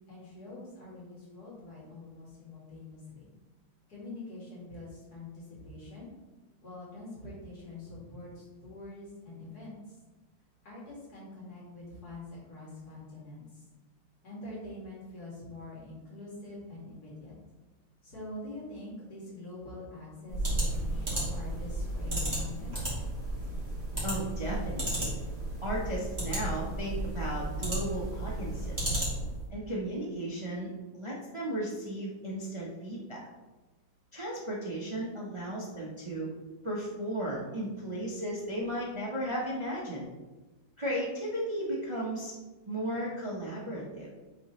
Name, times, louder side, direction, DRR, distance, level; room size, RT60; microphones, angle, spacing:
voice 1, 0.1-3.2 3.9-6.1 6.6-9.8 10.6-13.6 14.2-17.4 18.0-22.8, left 2 dB, 45° left, -6 dB, 2.8 m, -45 dB
sound 1, 20.3-29.4, right 1 dB, 15° right, 2.0 m, -33 dB
voice 2, 24.0-25.2 25.6-29.0 29.5-30.7 30.9-33.2 34.1-36.3 36.6-40.1 40.8-42.3 42.7-44.1, right 1 dB, 45° right, -4 dB, 0.4 m, -35 dB
8.8 x 3.9 x 3.2 m, 1.2 s
omnidirectional pair, 2.4 m